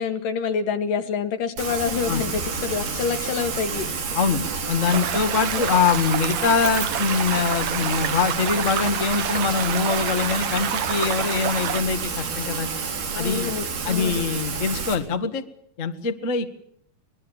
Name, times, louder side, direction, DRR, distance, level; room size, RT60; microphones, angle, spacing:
voice 1, 0.0-3.9 5.5-5.6 13.1-14.3, left 6 dB, 65° left, 7 dB, 3.3 m, -27 dB
Rain, 1.6-15.0, right 4 dB, 90° right, 5.5 m, -30 dB
voice 2, 4.1-12.7 13.1-13.5 13.8-15.4 15.8-16.5, left 5 dB, 35° left, 6 dB, 1.3 m, -23 dB
sound 1, 4.9-11.8, right 10 dB, 65° right, 1.5 m, -28 dB
24.5 x 21.5 x 7.2 m, 0.67 s
omnidirectional pair, 4.2 m